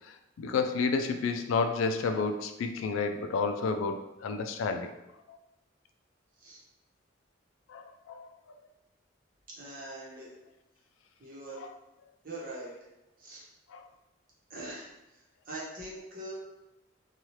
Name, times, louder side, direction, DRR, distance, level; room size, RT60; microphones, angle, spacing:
voice 1, 0.4-4.9 7.7-8.3 13.7-13.9, left 4 dB, 85° left, 7 dB, 0.3 m, -30 dB
voice 2, 9.6-10.3 11.2-11.6 12.2-12.9 13.2-13.4 14.5-16.3, right 1 dB, 45° right, -5 dB, 0.9 m, -43 dB
2.8 x 2.3 x 3.1 m, 0.93 s
head